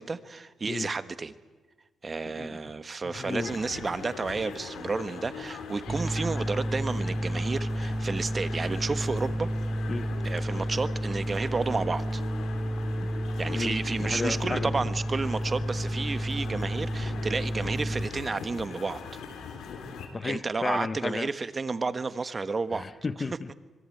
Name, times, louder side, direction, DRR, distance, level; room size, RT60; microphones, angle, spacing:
voice 1, 0.0-1.3 2.0-9.5 10.2-12.2 13.4-19.0 20.2-22.9, right 4 dB, 35° right, 1.3 m, -31 dB
sound 1, 3.1-20.1, left 5 dB, 90° left, 3.4 m, -41 dB
voice 2, 3.2-3.5 9.9-10.1 13.0-13.1 13.5-14.7 20.1-21.3 22.7-23.5, left 4 dB, 30° left, 0.9 m, -33 dB
sound 2, 5.9-18.1, right 1 dB, 15° right, 0.9 m, -31 dB
25.5 x 22.5 x 9.2 m
cardioid pair, 100°, 0 cm